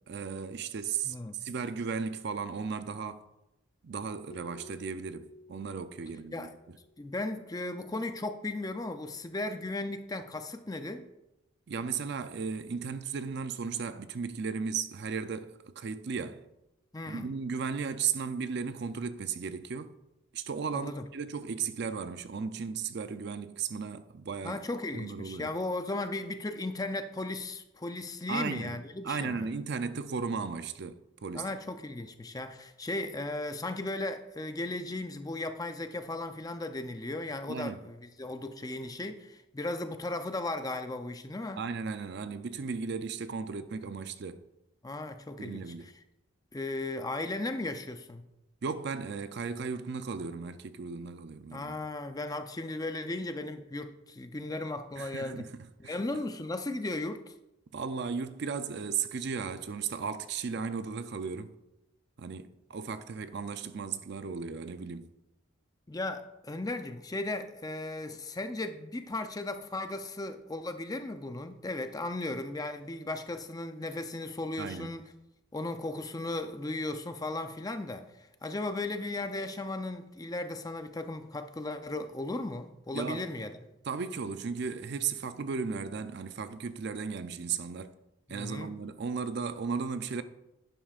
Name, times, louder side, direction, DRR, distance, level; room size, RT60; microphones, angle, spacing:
voice 1, 0.1-1.2 1.4-3.3 3.8-6.8 11.7-16.4 17.1-19.9 20.3-24.6 24.9-25.5 28.3-28.8 29.0-31.5 37.5-37.8 41.6-44.5 45.4-45.9 48.6-51.8 55.0-56.0 57.7-61.5 62.2-65.1 74.6-75.0 82.9-83.3 83.9-87.9 88.3-90.2, right 5 dB, 55° right, 0.4 m, -35 dB
voice 2, 1.0-1.4 6.3-6.5 7.0-11.1 16.9-17.3 20.7-21.1 24.4-29.5 31.3-41.6 44.8-45.6 46.5-48.2 51.5-55.5 55.8-57.3 65.9-75.0 75.5-83.6 88.3-88.7, left 2 dB, 20° left, 0.5 m, -36 dB
Keyboard (musical), 4.3-7.1, left 2 dB, 85° left, 0.9 m, -53 dB
11.5 x 9.0 x 2.4 m
head